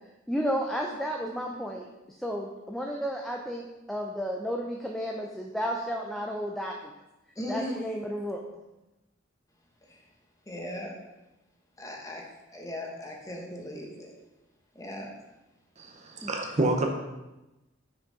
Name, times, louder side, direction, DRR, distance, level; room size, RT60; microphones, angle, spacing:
voice 1, 0.3-1.9 2.2-6.9 7.5-8.5 16.2-16.3, equal, ahead, 0 dB, 0.5 m, -32 dB
voice 2, 7.4-7.8 9.9-10.0 10.5-10.9 11.8-12.2 12.5-14.1 14.7-15.1, left 1 dB, 15° left, 0 dB, 1.2 m, -37 dB
voice 3, 15.8-16.9, right 2 dB, 35° right, 3 dB, 0.7 m, -28 dB
6.4 x 4.9 x 4.8 m, 1.0 s
head